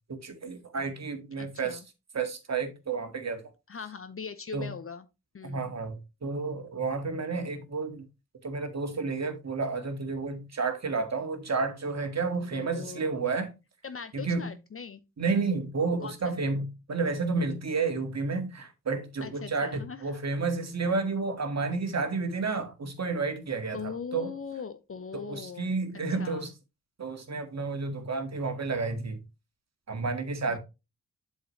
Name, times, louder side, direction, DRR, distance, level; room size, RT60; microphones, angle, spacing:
voice 1, 0.1-1.8 2.1-3.5 4.5-4.7 5.4-8.1 8.4-13.5 14.1-14.5 15.2-24.3 25.1-26.5 27.0-29.2 29.9-30.6, right 4 dB, 40° right, 1.9 m, -31 dB
voice 2, 1.4-1.8 3.7-5.0 5.3-5.7 12.4-13.0 13.8-15.0 16.0-16.1 19.2-20.0 23.7-25.7 26.2-26.5 30.5-30.6, left 6 dB, 30° left, 0.8 m, -40 dB
8.0 x 6.5 x 3.2 m
hypercardioid pair, 40°, 42 cm